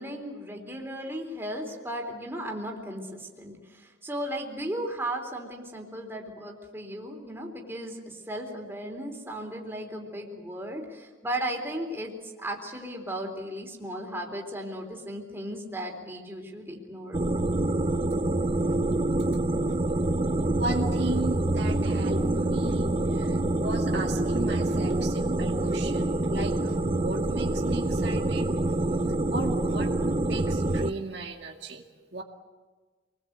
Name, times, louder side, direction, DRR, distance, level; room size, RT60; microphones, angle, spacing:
voice 1, 0.0-17.2, right 1 dB, 15° right, 1 dB, 3.7 m, -36 dB
sound 1, 17.1-30.9, right 2 dB, 30° right, 0.8 m, -26 dB
voice 2, 20.5-28.5 29.3-31.8 32.1-32.2, right 2 dB, 60° right, 1 dB, 2.2 m, -36 dB
27.5 x 21.0 x 8.1 m, 1.3 s
head